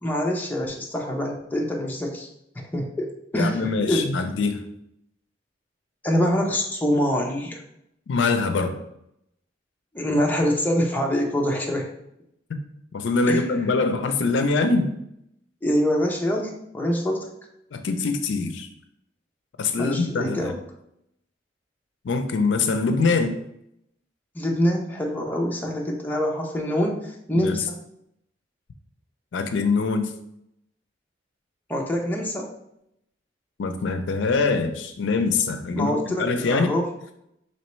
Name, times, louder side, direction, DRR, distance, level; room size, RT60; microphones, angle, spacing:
voice 1, 0.0-2.3 2.6-4.2 6.0-7.6 9.9-11.9 13.3-13.7 15.6-17.3 19.7-20.6 24.3-27.8 31.7-32.5 35.7-36.9, equal, 10° left, -1 dB, 0.5 m, -25 dB
voice 2, 3.3-4.6 8.1-8.7 12.9-14.9 17.7-18.7 19.6-20.5 22.0-23.3 27.3-27.6 29.3-30.1 33.6-36.7, left 4 dB, 70° left, 7 dB, 0.4 m, -23 dB
4.3 x 3.0 x 3.0 m, 0.78 s
head